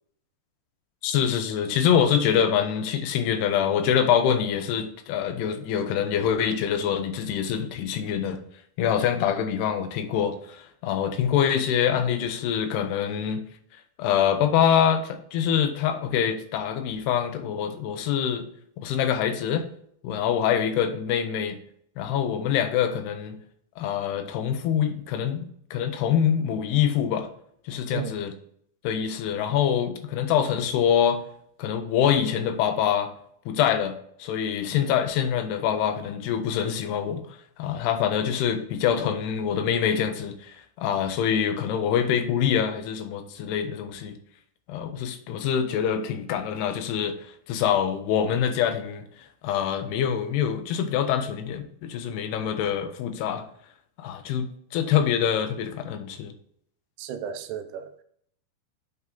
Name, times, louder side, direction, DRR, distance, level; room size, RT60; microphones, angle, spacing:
voice 1, 1.0-8.4 8.8-13.4 14.0-18.5 18.8-19.6 20.0-21.6 22.0-23.4 23.8-27.3 27.7-28.3 28.8-31.2 31.6-33.1 33.5-37.2 37.6-44.2 44.7-47.2 47.5-49.1 49.4-53.4 54.0-56.3, left 8 dB, 80° left, 2.8 m, -25 dB
voice 2, 57.0-58.0, right 9 dB, 80° right, 2.6 m, -34 dB
8.5 x 4.7 x 3.7 m
omnidirectional pair, 4.8 m